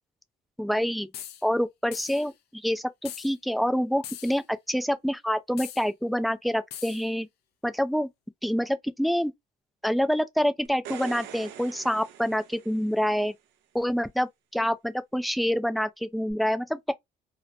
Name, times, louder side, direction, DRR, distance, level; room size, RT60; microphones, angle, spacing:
voice 1, 0.6-1.1 1.4-7.3 7.6-8.1 8.4-9.3 9.8-13.3 13.7-16.9, equal, ahead, 0.3 m, -27 dB
sound 1, 1.1-1.4 1.9-2.3 3.1-3.3 4.0-4.4 5.6-5.9 6.7-7.1, left 10 dB, 70° left, 0.6 m, -40 dB
sound 2, 10.7-13.2 16.3-16.4, right 10 dB, 85° right, 0.6 m, -43 dB
2.8 x 2.1 x 2.4 m
cardioid pair, 110°, 17 cm